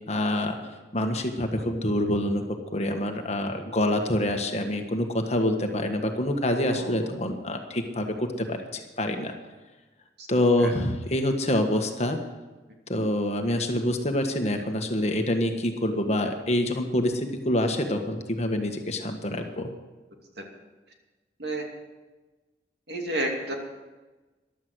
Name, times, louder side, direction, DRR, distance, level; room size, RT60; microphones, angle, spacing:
voice 1, 0.1-0.6 0.9-2.4 2.7-9.3 10.3-12.2 12.9-19.7, left 1 dB, 35° left, 4 dB, 1.5 m, -26 dB
voice 2, 22.9-23.5, right 1 dB, 65° right, 1 dB, 2.7 m, -30 dB
15.0 x 11.5 x 6.3 m, 1.2 s
head